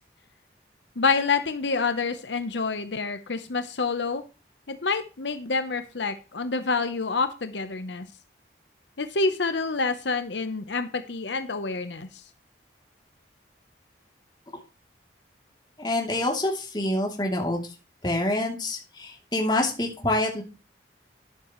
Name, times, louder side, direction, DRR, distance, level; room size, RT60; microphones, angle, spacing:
voice 1, 1.0-4.2 4.7-8.0 9.0-12.1, left 4 dB, 75° left, 9 dB, 0.9 m, -27 dB
voice 2, 15.8-17.7 18.0-20.4, left 1 dB, 25° left, 0 dB, 2.9 m, -26 dB
12.5 x 11.0 x 3.1 m, 0.32 s
head